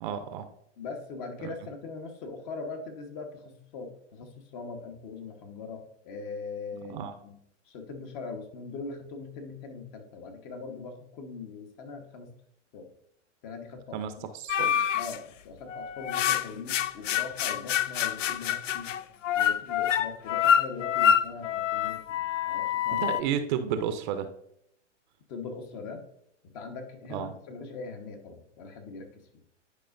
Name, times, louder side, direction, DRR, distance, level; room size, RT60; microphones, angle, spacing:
voice 1, 0.0-0.4 1.4-1.5 6.9-7.1 13.9-14.7 22.9-24.3 27.1-27.3, right 8 dB, 40° right, 9 dB, 0.6 m, -32 dB
voice 2, 0.8-7.4 7.6-12.3 12.7-12.9 13.4-14.3 15.0-18.9 19.3-23.2 25.3-26.0 26.4-29.4, left 4 dB, 40° left, 5 dB, 1.2 m, -41 dB
sound 1, 14.5-15.2 15.7-23.2, left 9 dB, 80° left, 0.5 m, -26 dB
10.5 x 4.9 x 2.5 m, 0.75 s
hypercardioid pair, 120°, 37 cm